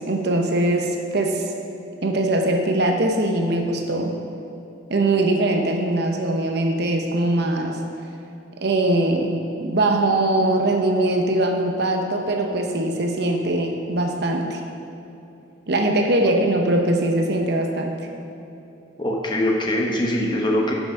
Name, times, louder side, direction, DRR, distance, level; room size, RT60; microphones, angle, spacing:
voice 1, 0.0-1.4 2.0-4.1 4.9-7.8 8.6-14.6 15.7-18.0, right 1 dB, 60° right, 3 dB, 0.9 m, -21 dB
voice 2, 19.0-20.7, left 1 dB, 25° left, -1 dB, 1.1 m, -22 dB
9.6 x 5.9 x 5.9 m, 2.8 s
head